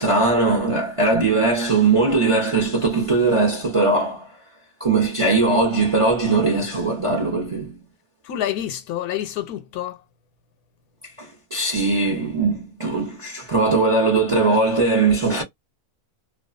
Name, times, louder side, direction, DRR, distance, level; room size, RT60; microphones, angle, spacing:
voice 1, 0.0-4.4 4.8-7.9 11.2-15.4, right 3 dB, 35° right, 0.5 m, -20 dB
voice 2, 8.2-10.0, left 11 dB, 85° left, 1.1 m, -28 dB
2.5 x 2.3 x 2.4 m
omnidirectional pair, 1.6 m